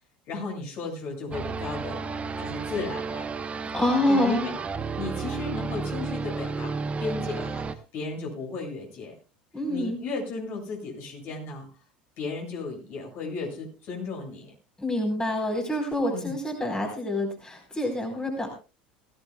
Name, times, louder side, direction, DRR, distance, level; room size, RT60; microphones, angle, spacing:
voice 1, 0.3-2.0 2.4-3.3 4.1-4.5 4.9-6.7 7.0-9.1 9.7-11.7 12.2-14.5 16.1-16.3, left 4 dB, 50° left, 0 dB, 7.7 m, -35 dB
sound 1, 1.3-7.7, right 4 dB, 25° right, 1.1 m, -32 dB
voice 2, 3.7-4.5 9.5-10.0 14.8-18.5, left 1 dB, 15° left, 1 dB, 4.4 m, -26 dB
20.5 x 16.0 x 2.3 m, 0.33 s
figure-of-eight pair, 70°, 5 cm